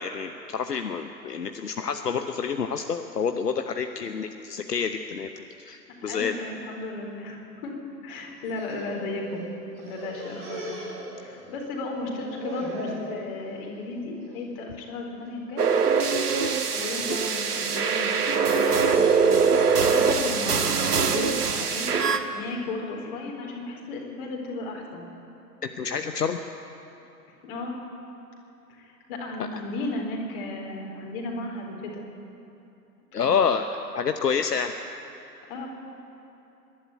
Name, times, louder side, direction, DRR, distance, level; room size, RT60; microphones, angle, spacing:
voice 1, 0.0-6.4 25.8-26.4 33.1-34.7, left 6 dB, 70° left, 7 dB, 1.1 m, -28 dB
voice 2, 6.0-7.8 8.0-9.4 9.8-10.7 11.1-15.7 16.7-21.9 22.3-25.0 27.4-27.8 28.7-32.0 33.2-33.5 35.5-35.7, left 2 dB, 35° left, 0 dB, 4.4 m, -35 dB
sound 1, 8.4-9.5 9.8-11.6 11.9-13.1 13.6-13.9 14.3-14.4 15.3-15.7 16.2-16.6 17.4-19.6, right 1 dB, 30° right, 7.1 m, -39 dB
sound 2, 15.6-22.2, right 5 dB, 65° right, 1.6 m, -23 dB
25.0 x 12.0 x 9.4 m, 2.9 s
figure-of-eight pair, 120°, 49 cm